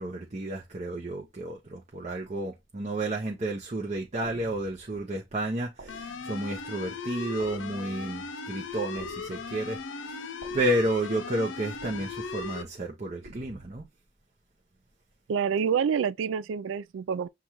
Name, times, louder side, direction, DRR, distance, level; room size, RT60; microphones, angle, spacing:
voice 1, 0.0-9.8 10.1-13.9, right 1 dB, 35° right, 0.7 m, -31 dB
sound 1, 4.2-5.0 5.8-6.6 7.4-8.2 9.0-9.8 10.4-11.2 11.8-12.4 13.2-13.8, right 1 dB, 65° right, 1.1 m, -50 dB
sound 2, 5.9-12.6, left 4 dB, 85° left, 0.6 m, -37 dB
voice 2, 15.3-17.3, right 7 dB, 80° right, 0.3 m, -27 dB
6.8 x 2.4 x 2.9 m
head